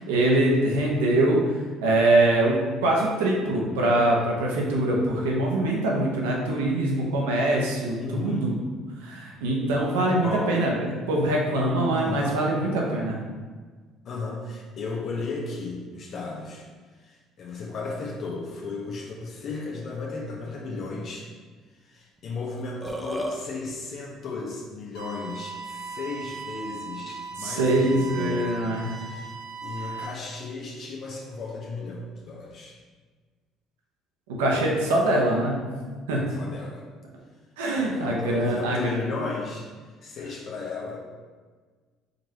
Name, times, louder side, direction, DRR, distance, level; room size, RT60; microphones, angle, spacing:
voice 1, 0.0-1.4 1.8-8.5 9.0-13.2 27.4-28.9 34.4-35.7 36.1-36.2 37.6-39.1, right 1 dB, 80° right, -2 dB, 0.8 m, -23 dB
voice 2, 8.0-8.5 10.2-10.5 11.9-12.4 14.0-16.7 17.0-21.3 21.8-28.6 28.9-29.3 29.6-32.8 36.3-36.9 37.8-39.7 40.0-41.1, left 3 dB, 55° left, -2 dB, 0.7 m, -35 dB
Burping eructation, 22.2-22.3 22.6-23.4, equal, ahead, 0.6 m, -31 dB
sound 1, 24.9-30.0, right 4 dB, 75° left, 1.2 m, -38 dB
5.2 x 2.9 x 2.8 m, 1.4 s
hypercardioid pair, 55°, 0 cm